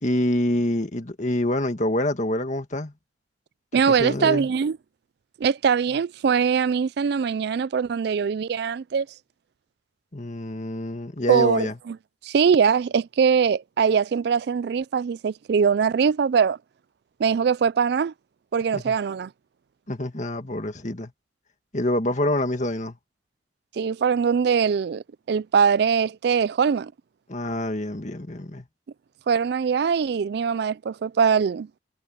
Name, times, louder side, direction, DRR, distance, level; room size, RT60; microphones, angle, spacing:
voice 1, 0.0-2.9 3.9-4.5 10.1-11.8 18.7-19.0 19.9-21.1 21.7-23.0 27.3-28.7, left 1 dB, 40° left, 2.0 m, -26 dB
voice 2, 3.7-4.8 5.4-9.1 11.3-12.0 12.2-16.6 17.2-18.1 18.5-19.3 23.8-26.9 29.3-31.7, right 6 dB, 60° right, 0.3 m, -22 dB
head